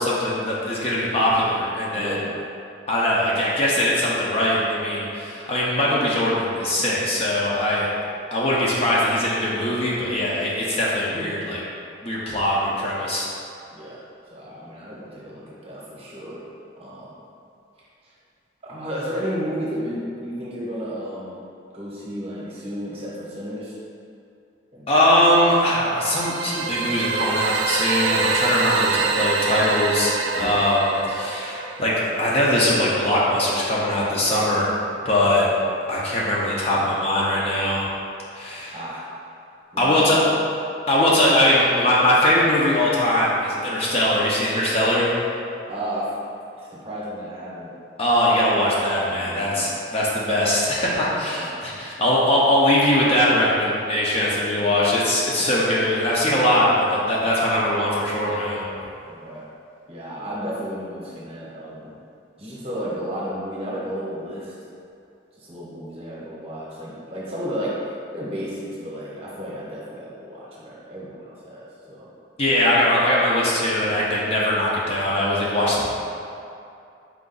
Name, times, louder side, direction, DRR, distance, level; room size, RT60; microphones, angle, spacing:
voice 1, 0.0-2.2 2.9-7.9 8.3-11.6 12.0-13.3 24.9-34.7 35.0-35.5 35.9-37.8 38.3-38.8 39.8-40.2 40.9-45.1 48.0-58.6 72.4-75.9, left 1 dB, 30° left, -6 dB, 0.6 m, -21 dB
voice 2, 1.9-2.3 13.7-14.0 14.3-16.4 16.8-17.1 18.7-21.3 21.7-23.7 24.7-24.9 30.4-30.6 38.7-39.0 39.7-40.2 45.7-46.1 46.6-47.7 49.2-49.7 51.2-51.6 54.3-54.7 55.2-55.5 59.1-59.4 59.9-61.9 62.4-64.5 65.4-72.1, equal, 30° right, -6 dB, 0.8 m, -33 dB
sound 1, 26.0-31.9, right 4 dB, 85° right, 0.3 m, -25 dB
4.6 x 2.5 x 3.8 m, 2.5 s
head